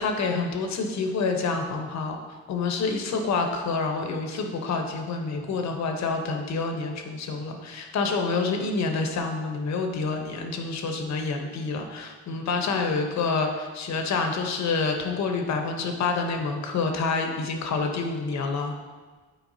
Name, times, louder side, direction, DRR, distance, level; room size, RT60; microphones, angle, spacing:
voice 1, 0.0-2.2 2.5-18.7, left 4 dB, 65° left, 4 dB, 0.9 m, -27 dB
9.1 x 4.5 x 2.7 m, 1.4 s
cardioid pair, 90°, 30 cm